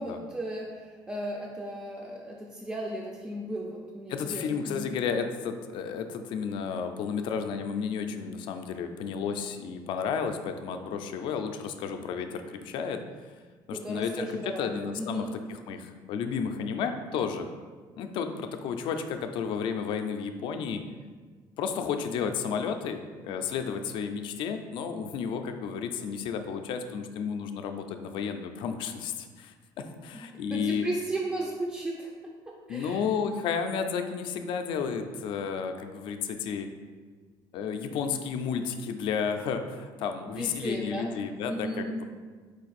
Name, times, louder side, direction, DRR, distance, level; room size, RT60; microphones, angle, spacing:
voice 1, 0.0-4.9 13.7-15.3 30.2-32.1 32.7-33.0 40.4-41.1 41.4-42.0, right 1 dB, 10° right, -2 dB, 0.3 m, -35 dB
voice 2, 4.1-13.0 13.7-17.5 18.0-20.8 21.6-30.9 32.7-36.7 37.5-42.0, left 6 dB, 65° left, 6 dB, 0.4 m, -32 dB
4.6 x 2.5 x 4.1 m, 1.5 s
cardioid pair, 140°, 9 cm